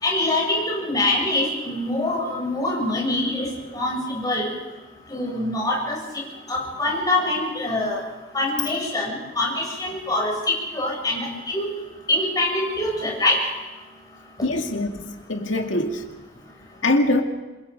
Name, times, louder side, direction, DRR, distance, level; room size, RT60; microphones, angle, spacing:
voice 1, 0.0-3.5 3.7-4.5 5.1-6.0 6.5-8.0 8.3-10.3 10.7-11.7 12.1-13.4, left 2 dB, 20° left, -2 dB, 7.0 m, -24 dB
voice 2, 14.4-16.0 16.8-17.2, left 2 dB, 90° left, 3 dB, 2.4 m, -23 dB
27.0 x 22.5 x 5.3 m, 1.1 s
head